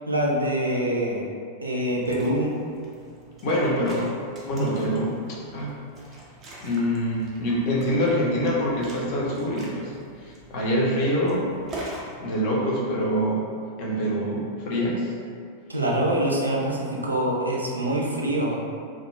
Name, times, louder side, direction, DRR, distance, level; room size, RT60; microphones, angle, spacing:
voice 1, 0.1-1.3 1.6-2.6 15.7-18.6, right 1 dB, 85° right, -3 dB, 0.4 m, -25 dB
Liquid, 1.8-12.1, right 1 dB, 25° right, 0.5 m, -43 dB
voice 2, 3.4-4.1 4.5-5.1 5.5-5.7 6.6-9.9 10.2-11.5 12.2-13.4 13.8-15.1, equal, 45° left, -4 dB, 0.6 m, -25 dB
2.2 x 2.2 x 3.0 m, 2.2 s
figure-of-eight pair, 90°, 0 cm